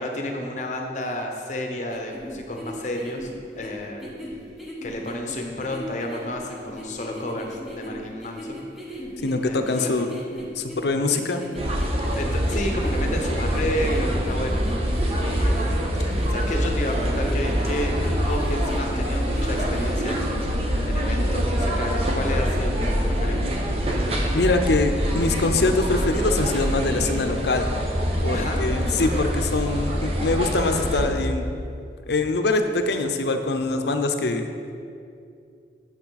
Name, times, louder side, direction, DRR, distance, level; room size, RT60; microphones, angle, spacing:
voice 1, 0.0-3.3 3.6-4.1 4.8-8.6 9.4-9.9 12.2-14.6 15.2-23.4 28.3-28.6, left 1 dB, 40° left, 2 dB, 0.9 m, -31 dB
sound 1, 1.9-20.5, equal, ahead, 1.0 m, -38 dB
voice 2, 9.2-10.1 10.6-11.4 24.3-27.7 28.2-31.4 32.1-34.5, left 3 dB, 70° left, 7 dB, 0.6 m, -23 dB
sound 2, 11.6-31.1, equal, 35° right, 0.9 m, -25 dB
8.5 x 7.3 x 4.0 m, 2.5 s
head